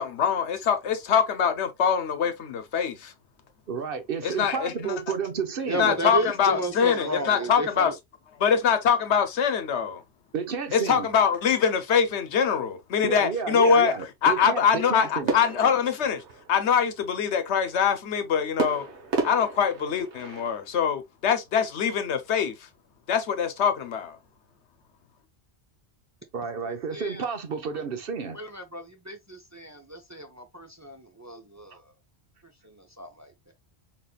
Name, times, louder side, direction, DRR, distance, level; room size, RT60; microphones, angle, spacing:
voice 1, 0.0-3.1 4.2-4.7 5.8-7.9 8.4-10.0 10.7-13.9 14.2-16.2 16.5-18.8 19.2-22.5 23.1-24.2, left 7 dB, 85° left, 1.1 m, -23 dB
voice 2, 3.7-5.9 10.3-11.1 13.0-15.4 26.3-28.4, right 6 dB, 60° right, 1.0 m, -31 dB
voice 3, 5.7-7.9 26.6-27.2 28.3-31.8 32.6-33.5, right 1 dB, 20° right, 0.5 m, -33 dB
sound 1, 15.3-16.8 18.6-20.7, right 3 dB, 85° right, 1.4 m, -32 dB
4.1 x 4.1 x 2.3 m
omnidirectional pair, 1.1 m